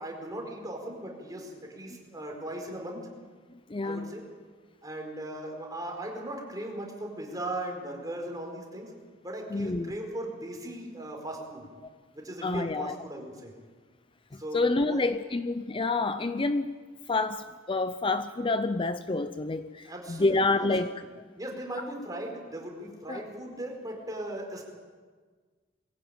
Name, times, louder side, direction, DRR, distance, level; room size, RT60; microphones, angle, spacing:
voice 1, 0.0-3.1 3.8-4.2 4.8-8.9 9.2-11.7 12.1-13.5 14.4-15.1 19.8-20.9 21.4-24.6, right 1 dB, 20° right, 1 dB, 4.8 m, -38 dB
voice 2, 3.7-4.1 9.5-9.9 12.4-12.9 14.3-16.7 17.1-20.9 23.1-23.2, left 3 dB, 30° left, 11 dB, 0.6 m, -28 dB
22.5 x 16.0 x 8.9 m, 1.5 s
head